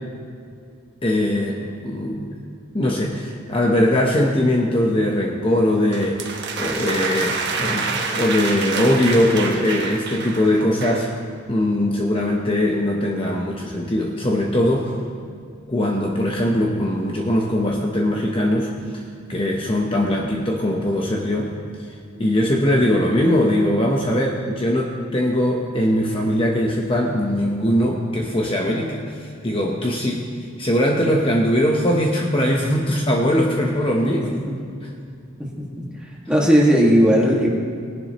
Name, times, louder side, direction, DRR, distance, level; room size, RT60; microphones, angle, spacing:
voice 1, 1.0-2.3 2.7-11.1 11.5-15.0 15.7-19.0 19.3-21.5 22.2-30.3 30.6-34.3 34.8-34.9, left 1 dB, 25° left, 0 dB, 0.8 m, -21 dB
sound 1, 5.9-11.1, right 4 dB, 55° right, 1.3 m, -27 dB
voice 2, 35.4-35.8 36.3-37.5, equal, 5° right, -4 dB, 1.9 m, -16 dB
19.0 x 11.0 x 3.0 m, 2.4 s
head